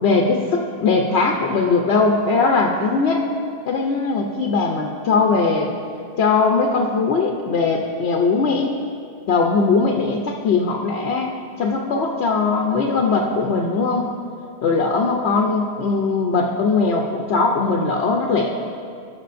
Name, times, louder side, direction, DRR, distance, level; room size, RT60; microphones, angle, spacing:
voice 1, 0.0-3.3 3.7-5.7 6.2-8.7 9.3-11.3 11.6-14.1 14.6-18.5, left 4 dB, 90° left, 1 dB, 1.0 m, -20 dB
18.0 x 6.1 x 2.5 m, 2.5 s
omnidirectional pair, 1.1 m